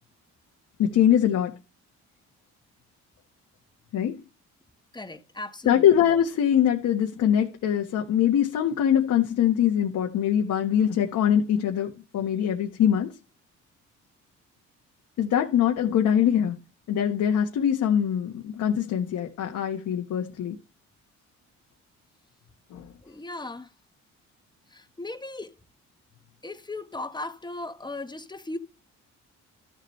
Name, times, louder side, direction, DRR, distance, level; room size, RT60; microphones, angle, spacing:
voice 1, 0.8-1.5 3.9-4.2 5.6-13.1 15.2-16.6 16.9-20.6 22.7-22.9, left 9 dB, 75° left, 1.5 m, -23 dB
voice 2, 4.9-5.8 23.0-23.7 24.7-25.5 26.4-28.6, left 2 dB, 15° left, 1.3 m, -37 dB
12.5 x 7.4 x 3.3 m
cardioid pair, 90°, 30 cm